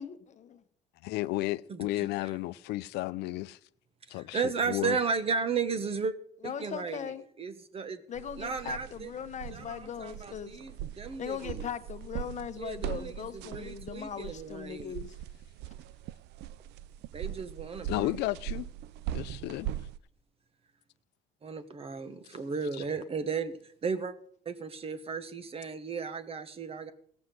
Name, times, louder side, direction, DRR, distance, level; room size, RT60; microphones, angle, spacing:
voice 1, 0.0-0.6 6.4-7.2 8.1-10.6 11.2-15.2, left 8 dB, 45° left, 1.1 m, -39 dB
voice 2, 1.0-3.6 4.1-5.0 17.9-18.7 19.1-19.7, left 18 dB, 85° left, 0.5 m, -33 dB
voice 3, 1.7-2.3 4.1-6.1 6.4-7.1 7.4-8.0 8.4-9.1 9.5-11.7 12.6-14.9 17.1-18.1 21.4-24.1 24.4-26.9, right 5 dB, 35° right, 1.3 m, -35 dB
sound 1, 8.2-20.0, right 12 dB, 80° right, 0.4 m, -41 dB
16.5 x 6.1 x 7.7 m
cardioid pair, 110°, 17 cm